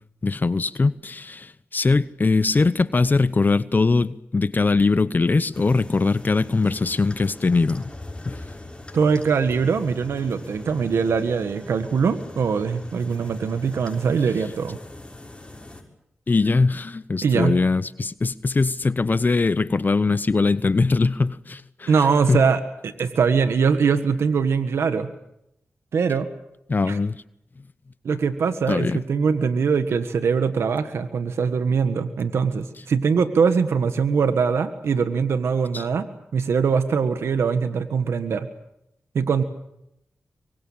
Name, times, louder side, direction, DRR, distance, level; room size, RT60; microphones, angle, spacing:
voice 1, 0.2-7.9 8.2-8.4 16.3-22.4 26.7-27.2 28.7-29.0 35.7-35.8, left 3 dB, 45° left, 0.9 m, -21 dB
sound 1, 5.5-15.8, left 2 dB, 25° left, 6.2 m, -41 dB
voice 2, 8.9-14.8 17.2-17.6 21.9-25.1 25.9-26.3 26.9-27.0 28.0-36.1 36.3-38.5 39.1-39.4, right 5 dB, 90° right, 1.6 m, -22 dB
26.0 x 24.0 x 7.3 m
cardioid pair, 50°, 4 cm